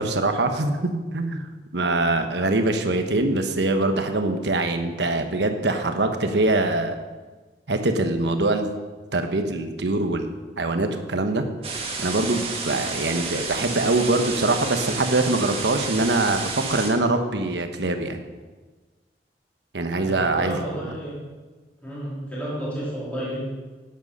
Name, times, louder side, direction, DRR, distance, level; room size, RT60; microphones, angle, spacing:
voice 1, 0.0-1.5 1.7-6.9 7.7-8.7 9.1-10.3 10.6-11.4 12.0-18.2 19.7-20.6, right 2 dB, 85° right, 6 dB, 1.1 m, -23 dB
sound 1, 11.6-16.9, right 4 dB, 35° right, 1.8 m, -31 dB
voice 2, 19.9-21.2 21.8-23.4, equal, 10° left, -9 dB, 3.4 m, -31 dB
12.5 x 9.1 x 5.5 m, 1.3 s
head